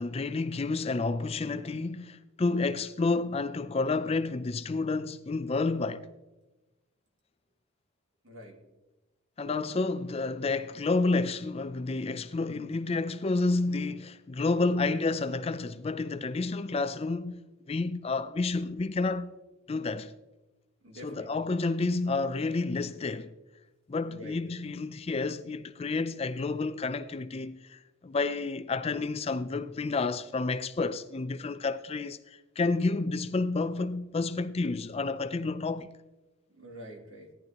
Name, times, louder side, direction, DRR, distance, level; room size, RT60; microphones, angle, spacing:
voice 1, 0.0-6.1 9.4-17.4 17.7-19.3 19.7-20.1 21.0-23.3 23.9-35.9, left 3 dB, 30° left, 0.4 m, -30 dB
voice 2, 8.2-8.6 20.8-21.3 24.1-24.6 36.5-37.3, equal, 65° right, 2.5 m, -46 dB
17.0 x 11.0 x 2.9 m
head